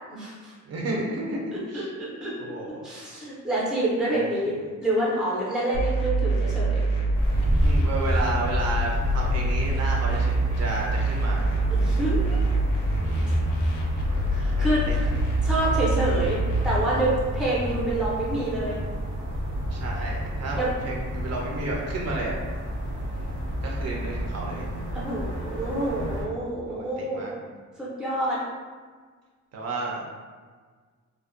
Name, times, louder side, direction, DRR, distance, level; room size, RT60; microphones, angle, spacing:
voice 1, 0.1-0.5 1.5-2.5 2.8-6.8 11.7-12.5 13.3-13.4 14.3-15.1 15.4-16.4 16.6-18.8 20.6-20.7 24.9-27.3 27.8-28.4, right 1 dB, ahead, -6 dB, 0.5 m, -27 dB
voice 2, 0.7-1.9 2.4-2.8 7.4-11.5 12.9-13.4 14.6-15.1 19.7-22.4 23.6-24.7 26.7-27.3 29.5-30.0, right 2 dB, 55° right, -2 dB, 0.5 m, -32 dB
sound 1, 5.7-16.8, right 2 dB, 75° left, 0.5 m, -25 dB
sound 2, 7.1-26.2, equal, 85° right, 0.8 m, -30 dB
2.4 x 2.1 x 2.4 m, 1.5 s
cardioid pair, 155°, 31 cm